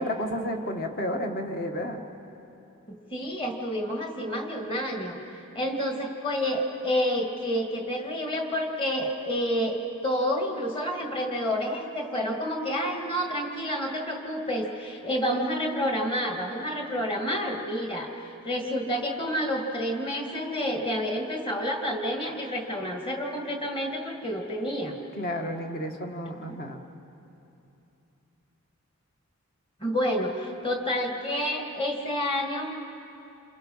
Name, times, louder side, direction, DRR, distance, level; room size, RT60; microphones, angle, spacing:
voice 1, 0.0-2.0 25.2-26.8, left 1 dB, 40° left, 3 dB, 1.7 m, -31 dB
voice 2, 2.9-5.2 5.5-18.1 18.4-25.0 26.5-26.6 29.8-32.7, equal, 25° left, 1 dB, 2.2 m, -29 dB
28.5 x 28.0 x 5.7 m, 2.9 s
head